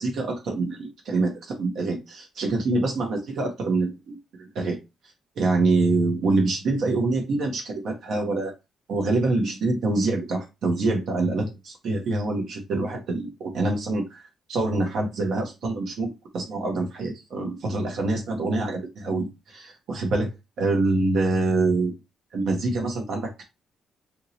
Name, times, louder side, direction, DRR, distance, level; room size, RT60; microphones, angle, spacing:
voice 1, 0.0-4.8 5.4-8.5 8.9-14.2 14.5-21.9 22.3-23.4, right 2 dB, 65° right, 2 dB, 0.9 m, -25 dB
2.9 x 2.8 x 2.8 m, 0.24 s
cardioid pair, 90°, 0 cm